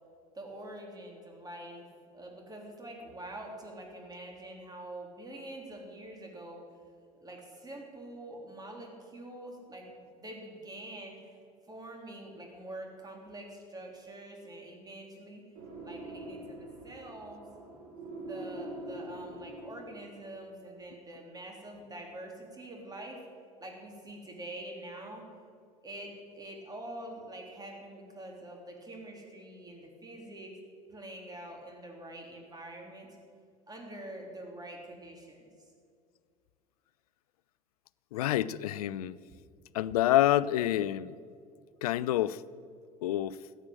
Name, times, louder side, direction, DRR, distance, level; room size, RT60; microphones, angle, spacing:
voice 1, 0.3-1.9 2.1-6.6 7.2-11.4 11.7-15.4 15.8-17.5 18.2-23.2 23.6-25.2 25.8-30.5 30.9-33.1 33.7-35.5, right 1 dB, 20° right, 3.5 m, -45 dB
sound 1, 15.5-20.2, right 1 dB, 65° right, 4.7 m, -44 dB
voice 2, 38.1-39.2 39.7-41.1 41.8-42.4 43.0-43.4, left 13 dB, 70° left, 0.5 m, -27 dB
14.0 x 9.1 x 7.7 m
figure-of-eight pair, 70°, 20 cm